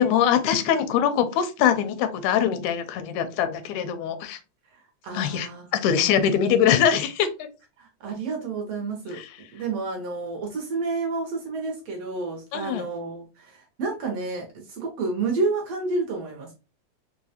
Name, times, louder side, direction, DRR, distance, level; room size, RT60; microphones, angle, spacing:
voice 1, 0.0-4.4 5.1-7.3 9.1-9.3 12.5-12.8, left 9 dB, 85° left, 11 dB, 1.9 m, -22 dB
voice 2, 4.7-5.7 5.9-6.2 7.8-9.2 9.5-16.5, right 3 dB, 70° right, 1 dB, 1.6 m, -30 dB
4.8 x 2.2 x 2.7 m, 0.31 s
omnidirectional pair, 3.4 m